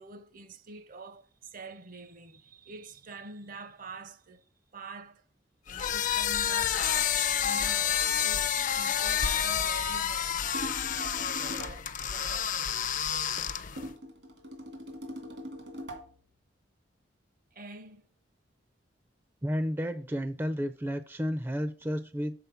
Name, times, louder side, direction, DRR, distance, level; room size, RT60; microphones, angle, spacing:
voice 1, 0.0-4.5 4.7-5.2 5.7-8.5 8.8-12.6 17.5-18.1, right 3 dB, 50° right, 0.7 m, -46 dB
sound 1, 5.7-13.9, left 8 dB, 45° left, 0.5 m, -29 dB
sound 2, 10.5-11.9 13.8-16.2, equal, 80° right, 2.2 m, -42 dB
voice 2, 19.4-22.3, equal, 10° right, 0.4 m, -32 dB
6.8 x 4.1 x 5.7 m
head